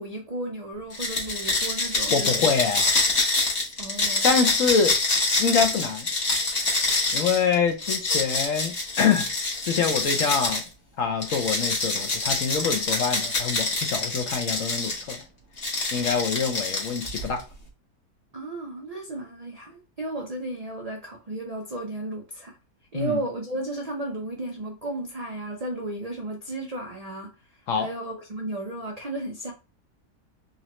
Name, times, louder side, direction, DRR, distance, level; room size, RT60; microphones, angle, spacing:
voice 1, 0.0-2.5 3.8-4.4 18.3-22.6 22.9-29.5, right 2 dB, 70° right, 0.3 m, -34 dB
sound 1, 0.9-10.7 11.2-15.2 15.6-17.4, left 3 dB, 45° left, 1.4 m, -26 dB
voice 2, 2.1-2.8 4.2-5.0 5.4-6.1 7.1-9.3 9.6-10.6 11.0-15.2 15.9-17.4 22.9-23.2 27.7-27.9, left 6 dB, 60° left, 0.9 m, -25 dB
4.0 x 3.0 x 3.0 m
omnidirectional pair, 1.7 m